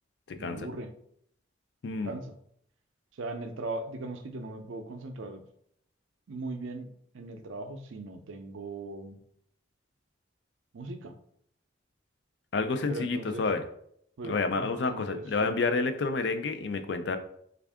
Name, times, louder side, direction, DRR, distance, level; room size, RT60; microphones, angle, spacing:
voice 1, 0.4-0.9 1.9-2.3 3.2-5.4 6.3-6.9 7.1-9.2 10.7-11.1 12.9-13.5 14.2-15.5, right 2 dB, 80° right, 7 dB, 0.5 m, -39 dB
voice 2, 1.8-2.2 12.5-13.7 14.2-17.2, left 4 dB, 60° left, 8 dB, 0.4 m, -29 dB
3.5 x 2.4 x 3.4 m, 0.69 s
head